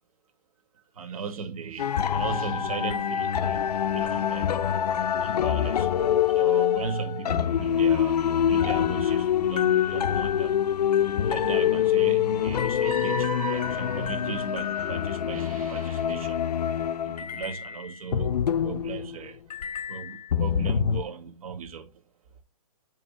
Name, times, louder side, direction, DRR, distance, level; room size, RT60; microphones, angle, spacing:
voice 1, 1.0-4.6 5.2-5.9 6.4-10.5 11.3-16.4 17.0-19.4 19.9-22.0, right 6 dB, 60° right, 1.8 m, -36 dB
sound 1, 1.8-19.2 19.5-21.0, left 9 dB, 75° left, 0.7 m, -25 dB
7.5 x 3.2 x 5.3 m
hypercardioid pair, 170°, 20 cm